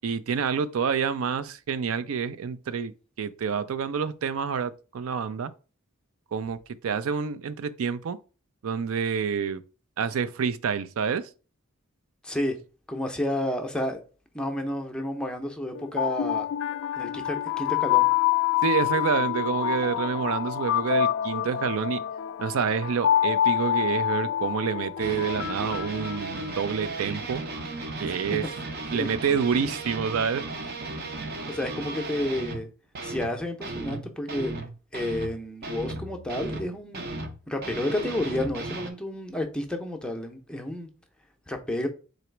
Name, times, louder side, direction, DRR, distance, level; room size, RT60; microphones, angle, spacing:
voice 1, 0.0-2.9 3.2-5.5 6.3-6.6 6.8-8.2 8.6-9.6 10.0-11.3 18.6-22.0 22.4-27.4 28.0-28.5 28.9-30.5, right 6 dB, 80° right, 0.4 m, -28 dB
voice 2, 12.2-12.6 12.9-14.0 14.3-16.5 17.0-18.1 28.9-29.1 31.5-32.7 33.0-34.5 34.9-37.1 37.5-40.9 41.5-41.9, left 1 dB, 5° left, 0.6 m, -30 dB
sound 1, 15.7-26.8, left 11 dB, 65° left, 0.3 m, -27 dB
sound 2, 25.0-32.7 32.9-33.3 33.6-36.7 36.9-38.9, right 2 dB, 50° right, 0.7 m, -35 dB
3.9 x 3.0 x 4.4 m
head